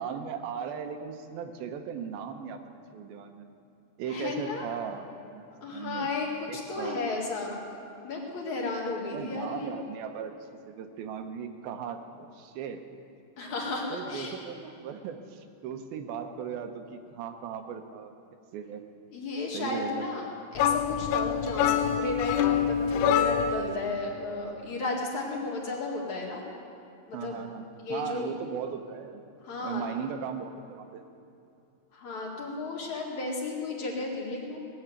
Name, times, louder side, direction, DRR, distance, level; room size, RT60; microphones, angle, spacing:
voice 1, 0.0-2.6 2.9-3.5 4.0-5.5 5.7-6.1 6.5-7.0 9.1-10.3 10.7-12.8 13.9-18.1 18.5-18.8 19.5-20.0 27.1-29.2 29.6-31.0, right 7 dB, 75° right, 6 dB, 2.5 m, -37 dB
voice 2, 4.1-4.7 5.6-7.6 8.0-9.8 13.4-14.3 19.1-26.5 27.1-27.4 27.8-28.3 29.4-29.8 31.9-34.6, left 3 dB, 50° left, -2 dB, 3.1 m, -34 dB
sound 1, 20.6-23.7, left 8 dB, 90° left, 2.8 m, -25 dB
18.5 x 8.0 x 9.5 m, 2.7 s
omnidirectional pair, 4.7 m